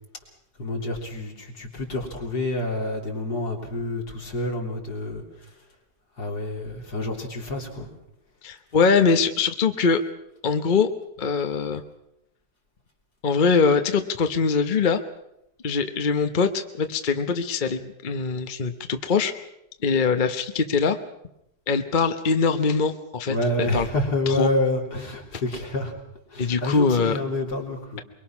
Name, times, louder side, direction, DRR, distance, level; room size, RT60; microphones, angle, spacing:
voice 1, 0.6-5.5 6.2-7.9 23.3-25.9 26.3-28.0, left 2 dB, 65° left, 0 dB, 3.9 m, -28 dB
voice 2, 8.4-10.0 10.4-10.9 11.2-11.8 13.2-15.0 15.6-19.3 19.8-21.0 21.7-23.9 24.3-24.5 26.4-27.2, left 5 dB, 35° left, 7 dB, 0.9 m, -22 dB
23.5 x 23.0 x 6.0 m, 0.82 s
omnidirectional pair, 1.8 m